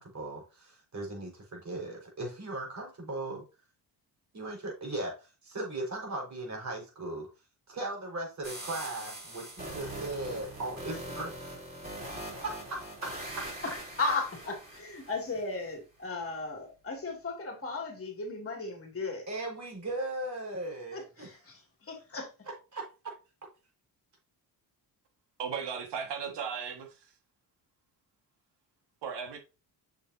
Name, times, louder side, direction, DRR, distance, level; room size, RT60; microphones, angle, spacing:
voice 1, 0.0-3.4 4.3-7.3 7.7-11.6 12.4-13.1 19.3-21.4 22.5-23.1, right 2 dB, 40° right, 4.8 m, -38 dB
sound 1, 8.4-15.4, right 1 dB, 25° right, 4.3 m, -42 dB
voice 2, 14.0-19.3 20.9-22.3, left 3 dB, 30° left, 2.8 m, -36 dB
voice 3, 25.4-27.1 29.0-29.4, right 6 dB, 75° right, 1.8 m, -36 dB
7.1 x 7.0 x 2.8 m
cardioid pair, 110°, 41 cm